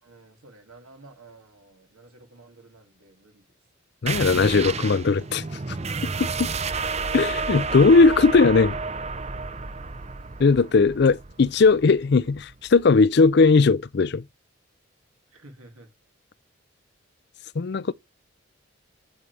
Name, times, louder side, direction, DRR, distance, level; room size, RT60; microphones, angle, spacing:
voice 1, 0.0-3.4 15.3-15.9, right 2 dB, 90° right, 2.7 m, -51 dB
voice 2, 4.0-5.4 6.2-6.5 7.1-8.8 10.4-14.2 17.6-17.9, left 4 dB, 50° left, 0.4 m, -18 dB
sound 1, 4.1-13.3, right 4 dB, 30° right, 0.6 m, -31 dB
9.7 x 8.9 x 3.4 m
head